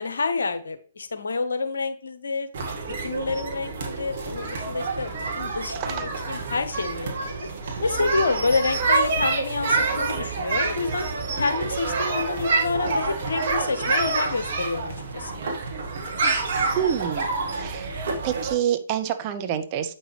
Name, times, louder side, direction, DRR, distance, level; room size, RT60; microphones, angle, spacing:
voice 1, 0.0-2.5 3.0-5.1 5.4-7.1 7.8-11.1 11.4-15.3, left 4 dB, 65° left, 9 dB, 1.0 m, -28 dB
sound 1, 2.5-18.5, right 3 dB, 45° right, 1.8 m, -27 dB
voice 2, 5.7-6.1 16.7-17.3 17.6-19.9, right 10 dB, 30° right, 8 dB, 0.7 m, -27 dB
8.0 x 5.9 x 3.3 m, 0.42 s
figure-of-eight pair, 130°, 0 cm